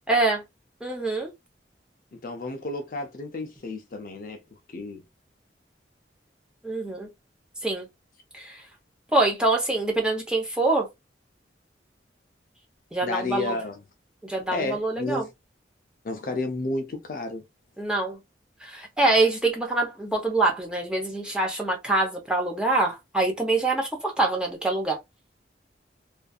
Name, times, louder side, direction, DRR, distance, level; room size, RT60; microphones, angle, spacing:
voice 1, 0.1-0.4 0.8-1.3 6.6-7.1 7.6-7.9 8.3-8.6 9.1-10.9 12.9-13.6 14.2-15.2 17.8-18.2 18.6-25.0, right 2 dB, 5° right, 0.7 m, -25 dB
voice 2, 2.2-4.4 4.7-5.0 13.0-13.8 14.5-15.3 16.0-17.4, left 2 dB, 50° left, 0.4 m, -31 dB
2.5 x 2.4 x 2.3 m
head